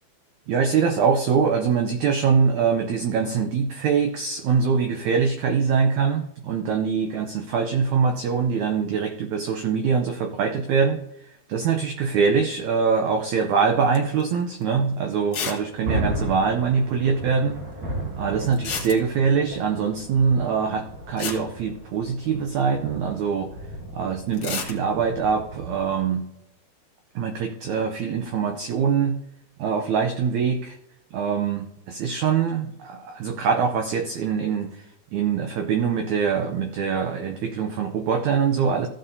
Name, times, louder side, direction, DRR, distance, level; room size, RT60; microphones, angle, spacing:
voice 1, 0.5-17.6 18.1-23.5 23.9-26.2 27.1-29.2 29.6-30.8 31.1-34.9 35.1-38.9, right 6 dB, 90° right, 5 dB, 1.6 m, -23 dB
sound 1, 13.9-14.2 14.6-14.7 15.3-15.7 15.9-16.0 16.2-16.3 18.5-19.4 20.8-20.9 21.2-22.4 24.3-24.8, left 6 dB, 60° left, 2.0 m, -31 dB
Thunder, 15.2-26.0, right 1 dB, 55° right, 5.3 m, -35 dB
15.0 x 8.4 x 2.7 m, 0.83 s
omnidirectional pair, 4.3 m